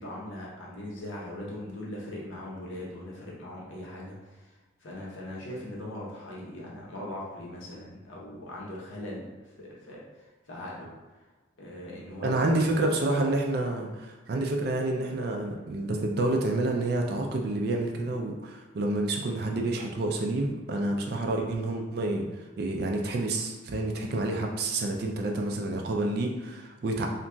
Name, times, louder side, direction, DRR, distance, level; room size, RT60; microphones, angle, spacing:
voice 1, 0.0-4.5 4.8-10.9 11.6-12.8, left 1 dB, 80° left, -4 dB, 0.8 m, -40 dB
voice 2, 12.2-22.3 22.6-27.1, right 2 dB, 50° right, 2 dB, 0.3 m, -28 dB
2.8 x 2.6 x 2.2 m, 1.3 s
head